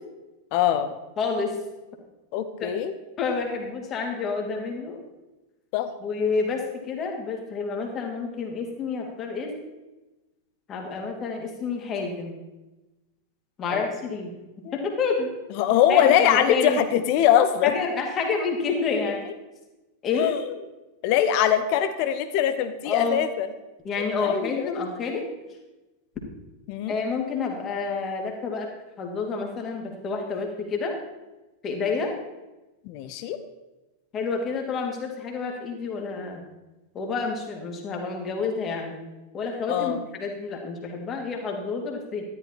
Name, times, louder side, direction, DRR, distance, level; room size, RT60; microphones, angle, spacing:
voice 1, 0.5-1.0 2.3-2.9 5.7-5.9 13.7-13.9 14.6-14.7 15.6-17.7 20.1-20.6 21.0-23.5 24.2-24.8 26.7-26.9 32.8-33.4 39.7-40.0, left 10 dB, 45° left, 10 dB, 1.0 m, -22 dB
voice 2, 1.2-1.6 2.6-2.7 3.2-5.0 6.0-9.5 10.7-12.3 13.6-14.3 14.7-15.3 15.9-16.8 17.6-19.3 20.0-20.3 22.8-23.2 23.8-25.3 26.9-28.7 29.0-31.0 31.6-32.1 34.1-36.4 36.9-39.0 39.3-42.2, left 4 dB, 30° left, 1 dB, 3.0 m, -29 dB
13.0 x 12.0 x 4.3 m, 1.1 s
figure-of-eight pair, 90°, 0 cm